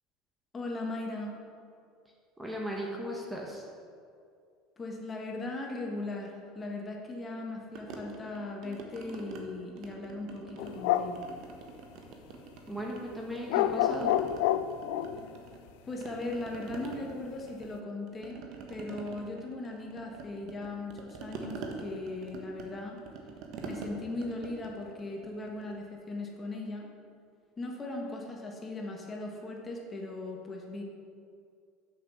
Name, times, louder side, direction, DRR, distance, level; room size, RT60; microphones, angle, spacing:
voice 1, 0.5-1.4 4.8-11.3 15.8-18.4 18.7-23.0 23.6-26.9 27.6-30.8, left 2 dB, 20° left, 0 dB, 1.3 m, -38 dB
voice 2, 2.4-3.7 12.7-14.1, equal, 5° right, -1 dB, 1.1 m, -36 dB
sound 1, 7.8-9.4 9.8-10.8 11.2-13.0 13.3-15.7 16.0-25.8, right 4 dB, 60° right, 1.2 m, -45 dB
sound 2, 10.6-11.2 13.5-15.3, left 11 dB, 80° left, 0.3 m, -28 dB
6.6 x 5.9 x 7.0 m, 2.4 s
supercardioid pair, 125°, 0 cm